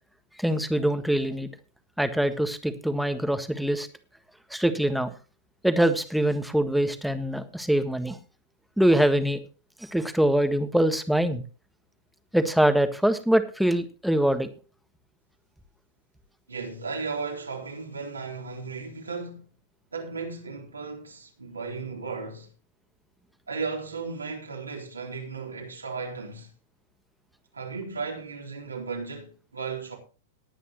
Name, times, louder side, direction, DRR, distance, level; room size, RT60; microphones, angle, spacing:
voice 1, 0.4-1.5 2.0-3.9 4.5-5.1 5.6-8.2 8.8-9.4 9.8-11.4 12.3-14.5, right 1 dB, ahead, 1.5 m, -23 dB
voice 2, 16.5-19.5 19.9-22.5 23.5-26.5 27.5-30.0, right 4 dB, 85° right, 3.6 m, -35 dB
19.0 x 9.3 x 3.0 m
figure-of-eight pair, 100°, 0 cm